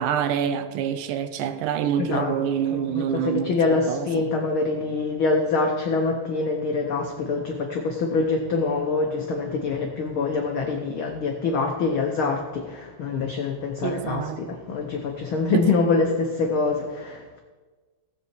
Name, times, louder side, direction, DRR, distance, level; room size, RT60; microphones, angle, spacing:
voice 1, 0.0-4.2 13.8-14.4 15.5-15.7, right 8 dB, 80° right, 11 dB, 2.1 m, -26 dB
voice 2, 2.7-17.4, left 4 dB, 85° left, 2 dB, 1.1 m, -25 dB
16.5 x 8.2 x 4.5 m, 1.3 s
omnidirectional pair, 3.7 m